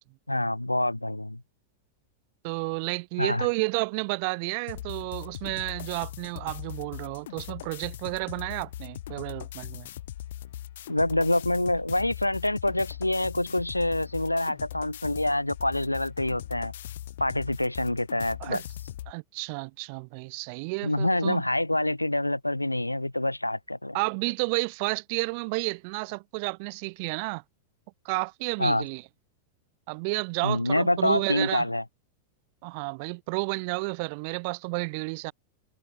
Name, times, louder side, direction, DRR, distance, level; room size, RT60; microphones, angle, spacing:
voice 1, 0.3-1.4 3.2-3.5 10.9-16.7 17.2-18.6 20.8-24.0 28.6-28.8 30.4-31.8, left 1 dB, 85° left, 1.4 m, -26 dB
voice 2, 2.4-9.9 18.4-18.6 19.1-21.4 23.9-27.4 28.0-29.0 29.9-31.7 32.6-35.3, right 33 dB, 45° right, 0.8 m, -31 dB
sound 1, 4.7-19.1, left 13 dB, 60° left, 1.3 m, -40 dB
figure-of-eight pair, 90°, 0 cm